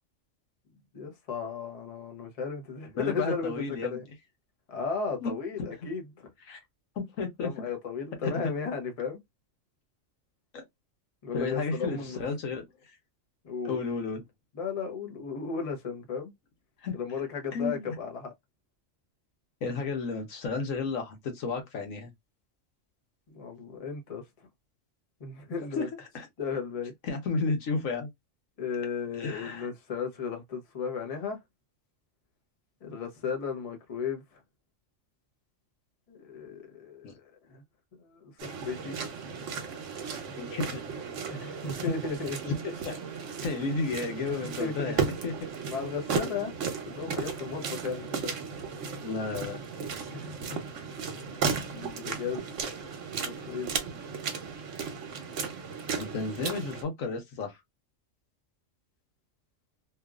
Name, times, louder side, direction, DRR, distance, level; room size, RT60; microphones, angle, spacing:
voice 1, 0.9-4.0 4.7-6.0 7.4-9.2 11.2-12.2 13.4-13.8 14.5-16.3 16.9-18.3 23.3-24.2 25.2-25.9 26.4-26.9 28.6-31.4 32.8-34.4 36.1-37.6 38.0-39.0 41.2-42.5 44.6-44.9 45.7-46.5 46.9-48.3 50.1-50.6 51.5-52.5 53.1-53.7, left 5 dB, 35° left, 0.7 m, -35 dB
voice 2, 2.9-4.0 5.2-5.3 5.8-5.9 6.4-6.6 7.0-7.5 8.2-8.3 10.5-10.6 11.3-12.6 13.6-14.2 16.8-16.9 17.5-18.0 19.6-22.1 25.7-25.9 26.1-26.3 27.1-28.1 29.2-29.7 37.0-37.1 40.4-40.8 41.9-42.0 42.6-43.0 43.4-45.3 49.0-49.6 55.9-57.6, left 4 dB, 85° left, 1.3 m, -32 dB
sound 1, 38.4-56.8, right 5 dB, 70° right, 1.1 m, -35 dB
2.9 x 2.4 x 2.3 m
omnidirectional pair, 1.4 m